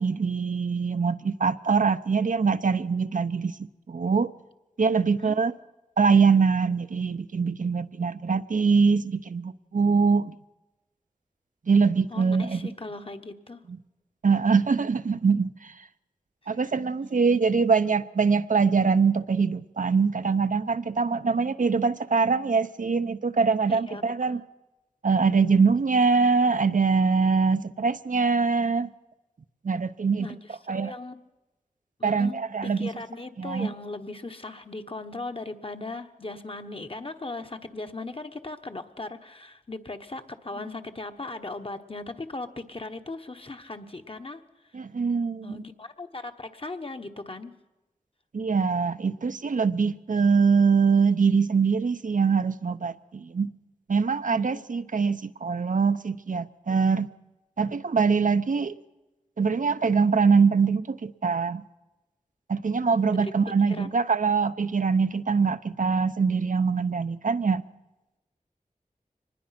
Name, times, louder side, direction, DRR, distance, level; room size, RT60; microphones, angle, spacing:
voice 1, 0.0-3.5 3.9-4.3 4.8-5.5 6.0-10.3 11.7-12.6 13.7-13.8 14.2-15.7 16.5-24.4 25.0-28.9 29.6-30.3 30.7-30.9 32.0-32.9 33.4-33.7 44.7-45.6 48.3-53.5 53.9-57.1 57.6-58.7 59.4-61.6 62.5-67.6, right 5 dB, 70° right, 11 dB, 0.7 m, -23 dB
voice 2, 12.1-13.6 23.7-24.4 30.2-31.2 32.0-44.4 45.4-47.5 54.3-54.6 63.1-63.3 63.6-63.9, left 2 dB, 40° left, 7 dB, 1.3 m, -38 dB
24.0 x 20.0 x 5.9 m, 1.0 s
wide cardioid pair, 70°, 14 cm